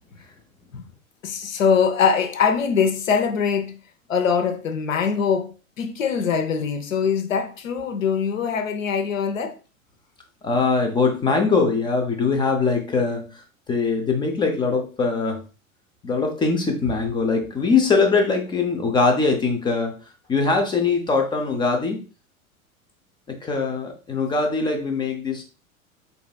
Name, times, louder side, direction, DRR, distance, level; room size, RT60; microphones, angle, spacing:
voice 1, 1.2-3.8 4.1-9.6, left 6 dB, 65° left, 0.9 m, -22 dB
voice 2, 10.4-15.4 16.0-20.0 20.3-22.0 23.4-25.4, left 4 dB, 10° left, 0.5 m, -22 dB
4.7 x 4.0 x 2.3 m
figure-of-eight pair, 90°, 42 cm